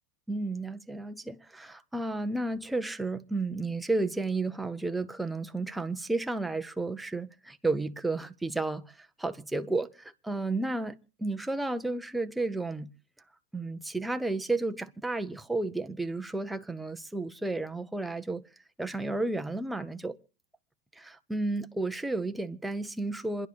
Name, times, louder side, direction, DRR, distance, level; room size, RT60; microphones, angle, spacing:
voice 1, 0.3-12.9 13.5-18.5 18.8-20.2 20.9-23.5, right 2 dB, 5° right, 0.6 m, -32 dB
27.5 x 10.5 x 3.3 m
supercardioid pair, 150°, 0 cm